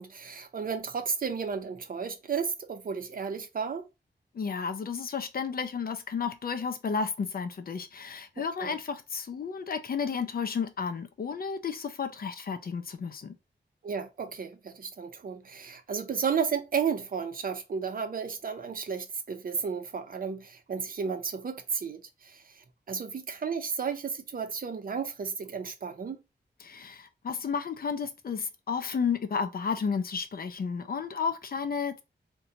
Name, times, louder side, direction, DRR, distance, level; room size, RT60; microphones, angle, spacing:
voice 1, 0.0-3.8 8.4-8.7 13.8-26.2, right 6 dB, 50° right, 0.6 m, -33 dB
voice 2, 4.3-13.3 26.6-32.0, left 6 dB, 55° left, 0.5 m, -32 dB
2.7 x 2.2 x 3.9 m
wide cardioid pair, 105°, 18 cm